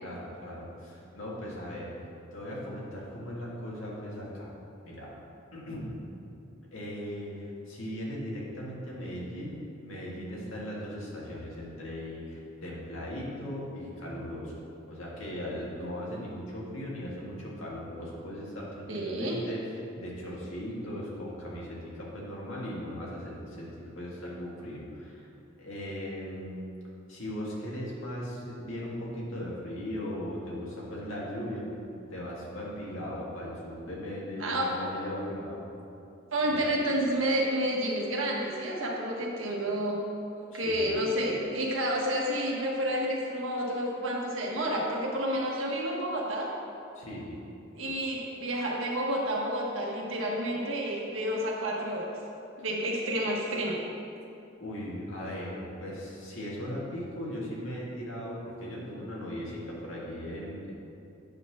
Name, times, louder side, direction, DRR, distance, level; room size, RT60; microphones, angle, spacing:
voice 1, 0.0-1.9 2.3-4.5 4.8-5.1 5.5-5.9 6.7-14.5 14.9-25.3 25.6-26.6 27.1-31.7 32.1-35.6 36.4-36.6 40.5-41.0 47.0-47.4 54.6-60.7, equal, 75° left, -5 dB, 2.0 m, -38 dB
voice 2, 18.9-19.4 34.4-34.7 36.3-40.0 40.4-46.5 47.8-52.1 52.6-53.8, right 1 dB, 80° right, -2 dB, 1.5 m, -30 dB
8.7 x 4.2 x 6.2 m, 2.7 s
head